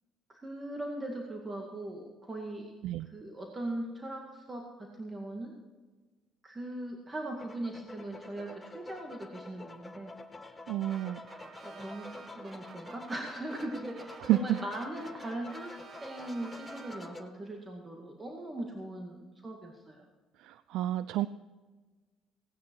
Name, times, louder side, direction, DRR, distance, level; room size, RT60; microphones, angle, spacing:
voice 1, 0.3-2.7 3.1-5.5 6.4-10.1 10.4-10.5 11.6-15.7 16.0-20.0, right 1 dB, 20° right, 1 dB, 2.1 m, -40 dB
sound 1, 7.3-17.2, left 2 dB, 20° left, 1.2 m, -48 dB
voice 2, 10.7-11.2 14.3-14.6 20.4-21.3, right 13 dB, 75° right, 14 dB, 0.4 m, -29 dB
sound 2, 10.9-17.4, right 4 dB, 40° right, 1.2 m, -52 dB
17.5 x 9.5 x 4.7 m, 1.3 s
cardioid pair, 95°, 0 cm